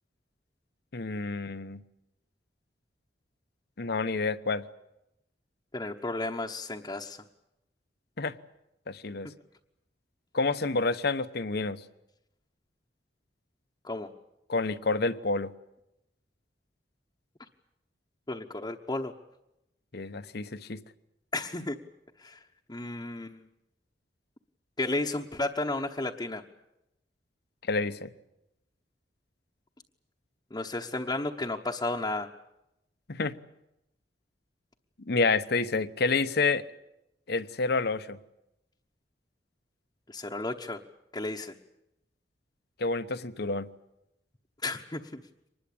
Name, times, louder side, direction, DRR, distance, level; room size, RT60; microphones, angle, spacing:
voice 1, 0.9-1.8 3.8-4.6 8.2-8.3 8.9-9.3 10.3-11.8 14.5-15.5 19.9-20.8 27.7-28.1 33.1-33.3 35.1-36.6 37.3-38.2 42.8-43.7, left 3 dB, 60° left, 12 dB, 1.0 m, -28 dB
voice 2, 5.7-7.2 13.8-14.1 18.3-19.1 21.3-21.8 22.2-22.4 22.7-23.5 24.8-26.4 30.5-32.3 40.1-40.8 41.1-41.5 44.6-45.2, left 2 dB, 25° left, 0 dB, 1.0 m, -33 dB
24.0 x 20.5 x 8.7 m, 0.87 s
head